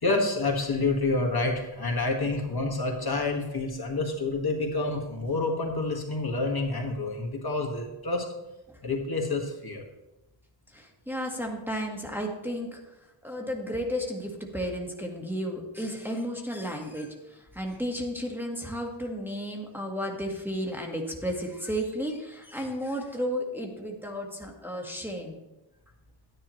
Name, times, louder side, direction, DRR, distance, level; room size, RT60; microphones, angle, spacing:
voice 1, 0.0-8.3 8.8-9.8, left 3 dB, 50° left, 1 dB, 1.8 m, -28 dB
voice 2, 10.7-12.8 13.2-25.4, equal, 5° right, 0 dB, 1.5 m, -33 dB
12.0 x 9.8 x 3.1 m, 0.96 s
wide cardioid pair, 70°, 47 cm